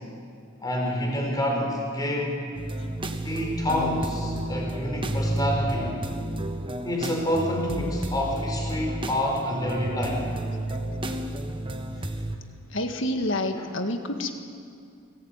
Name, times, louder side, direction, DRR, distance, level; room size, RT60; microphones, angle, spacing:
voice 1, 0.6-2.5 3.2-5.9 6.8-10.2, left 1 dB, 20° left, 0 dB, 4.4 m, -27 dB
sound 1, 2.5-12.4, right 1 dB, 25° right, 1.3 m, -31 dB
voice 2, 10.7-11.2 12.3-14.3, left 1 dB, 60° left, 6 dB, 1.8 m, -30 dB
25.0 x 17.0 x 9.1 m, 2.3 s
head